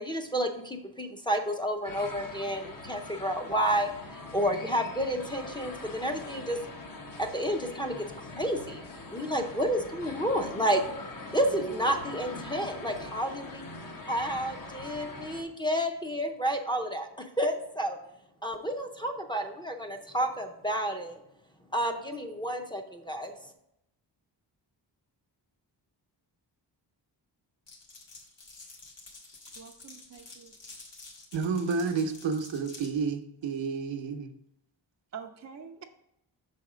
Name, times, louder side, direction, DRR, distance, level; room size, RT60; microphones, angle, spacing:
voice 1, 0.0-3.9 4.3-6.6 7.2-8.0 8.4-8.8 9.1-10.8 11.3-13.6 14.0-17.1 17.4-18.0 18.4-21.2 21.7-23.3, equal, 10° left, 0.6 m, -30 dB
sound 1, 1.8-15.4, left 2 dB, 50° left, 0.9 m, -42 dB
Glass, 27.7-32.9, left 3 dB, 70° left, 1.9 m, -49 dB
voice 2, 29.6-30.5 35.1-35.8, right 7 dB, 40° right, 0.5 m, -45 dB
voice 3, 31.3-34.3, right 5 dB, 75° right, 0.8 m, -30 dB
6.2 x 4.2 x 4.9 m
wide cardioid pair, 140°, 44 cm